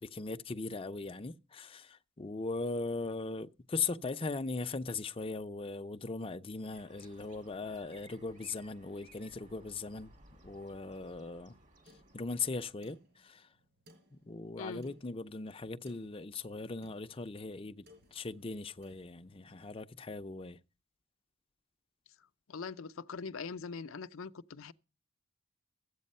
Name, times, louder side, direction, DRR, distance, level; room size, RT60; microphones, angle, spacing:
voice 1, 0.0-10.1 10.4-11.6 12.1-13.5 14.1-17.9 18.1-20.6, left 3 dB, 25° left, 0.5 m, -39 dB
sound 1, 6.7-12.7, right 1 dB, 40° right, 1.7 m, -60 dB
sound 2, 11.9-19.6, left 1 dB, 55° right, 5.0 m, -65 dB
voice 2, 22.5-24.7, left 5 dB, 80° left, 0.6 m, -42 dB
13.5 x 8.3 x 5.4 m
head